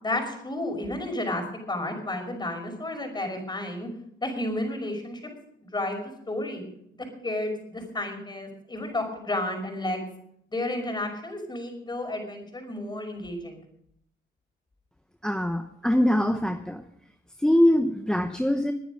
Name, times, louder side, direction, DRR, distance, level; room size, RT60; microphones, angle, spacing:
voice 1, 0.0-3.9 4.2-5.3 5.6-6.6 6.9-10.0 10.5-13.6, left 1 dB, 20° left, 4 dB, 5.5 m, -32 dB
voice 2, 15.2-16.8 17.4-18.7, left 1 dB, 5° left, 7 dB, 1.0 m, -23 dB
21.0 x 10.0 x 5.2 m, 0.72 s
cardioid pair, 90°, 20 cm